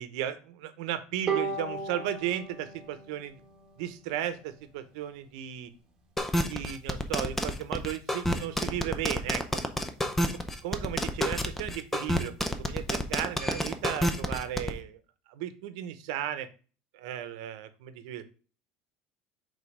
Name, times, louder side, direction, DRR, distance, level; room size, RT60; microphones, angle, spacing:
voice 1, 0.0-3.4 3.8-5.7 6.5-9.4 10.3-15.0 15.3-16.5 16.9-18.2, right 11 dB, 80° right, 11 dB, 0.9 m, -35 dB
Bowed string instrument, 1.3-4.6, right 5 dB, 20° right, 1.5 m, -36 dB
sound 1, 6.2-14.7, left 1 dB, 5° left, 0.6 m, -29 dB
5.3 x 3.8 x 5.0 m, 0.37 s
cardioid pair, 150°, 3 cm